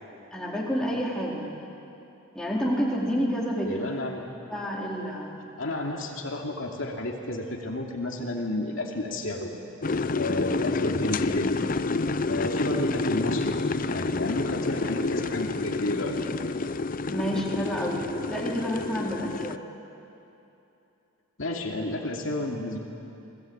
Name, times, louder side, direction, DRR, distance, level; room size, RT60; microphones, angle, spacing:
voice 1, 0.3-1.6 2.3-3.9 4.5-5.5 17.1-19.7, equal, 5° left, -4 dB, 4.2 m, -29 dB
voice 2, 3.6-4.2 5.6-9.5 10.1-11.6 12.3-13.6 13.9-16.2 21.4-22.8, left 1 dB, 65° left, 0 dB, 2.7 m, -31 dB
sound 1, 9.8-19.6, left 3 dB, 40° left, 0.6 m, -29 dB
30.0 x 21.0 x 8.8 m, 2.8 s
head